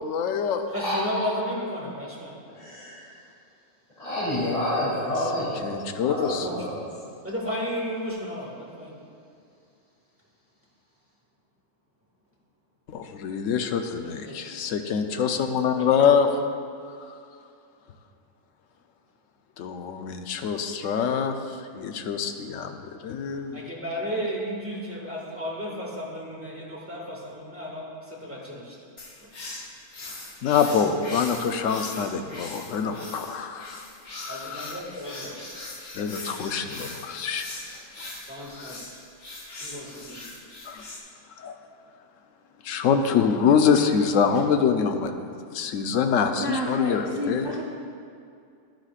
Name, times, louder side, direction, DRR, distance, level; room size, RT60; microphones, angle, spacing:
voice 1, 0.0-0.6 1.3-1.4 5.4-6.5 12.9-16.3 19.6-23.6 30.4-33.9 34.1-34.8 35.9-37.4 38.5-38.8 40.7-40.8 41.4-41.6 42.6-47.5, left 6 dB, 75° left, 6 dB, 1.0 m, -25 dB
voice 2, 0.7-2.4 6.3-6.6 7.2-9.0 14.0-14.4 15.5-16.1 23.5-28.8 29.2-29.3 34.3-35.4 38.3-38.8 39.6-40.3, equal, 10° right, -5 dB, 1.8 m, -34 dB
voice 3, 2.5-2.9 4.0-6.7, left 1 dB, 30° left, -11 dB, 2.7 m, -29 dB
sound 1, 29.0-41.0, left 2 dB, 55° left, 1.4 m, -41 dB
voice 4, 46.4-47.6, equal, 30° right, -3 dB, 0.5 m, -30 dB
11.5 x 10.5 x 2.4 m, 2.4 s
omnidirectional pair, 1.3 m